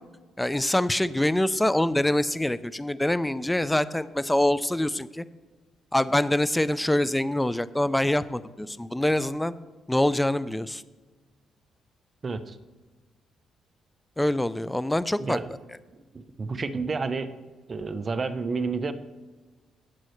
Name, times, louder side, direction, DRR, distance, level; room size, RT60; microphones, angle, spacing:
voice 1, 0.4-5.2 5.9-9.5 9.9-10.8 14.2-15.4, left 1 dB, 10° left, 16 dB, 0.4 m, -25 dB
voice 2, 12.2-12.6 15.2-15.5 16.1-17.3 17.7-18.9, right 4 dB, 35° right, 11 dB, 0.7 m, -30 dB
17.0 x 7.5 x 3.2 m, 1.3 s
cardioid pair, 90°, 0 cm